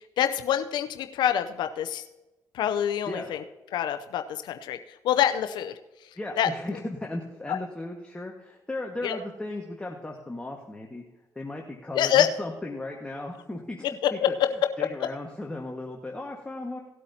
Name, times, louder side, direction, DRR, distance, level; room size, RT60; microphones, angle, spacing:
voice 1, 0.2-2.0 2.5-3.4 3.7-4.8 5.0-5.8 6.4-6.5 7.5-7.6 9.0-9.2 11.9-12.3 14.2-14.3, left 10 dB, 75° left, 8 dB, 0.6 m, -25 dB
voice 2, 6.2-11.0 11.3-14.4 14.8-16.8, left 2 dB, 15° left, 0 dB, 1.6 m, -36 dB
18.0 x 8.3 x 2.8 m, 1.1 s
supercardioid pair, 65°, 8 cm